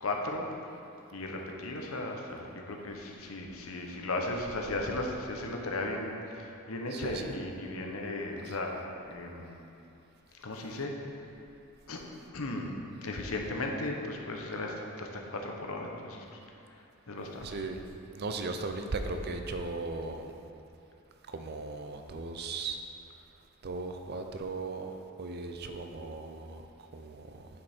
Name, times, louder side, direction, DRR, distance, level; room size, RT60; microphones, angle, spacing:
voice 1, 0.0-0.5 1.1-8.8 9.1-9.6 10.4-11.2 11.9-12.0 12.3-16.2 17.1-17.6, left 2 dB, 80° left, 1 dB, 0.9 m, -36 dB
voice 2, 6.9-7.3 17.4-17.8 18.2-20.4 21.3-22.8 23.6-24.9 25.2-26.6 26.9-27.5, right 3 dB, 50° right, 6 dB, 0.5 m, -37 dB
9.4 x 5.3 x 4.4 m, 2.7 s
head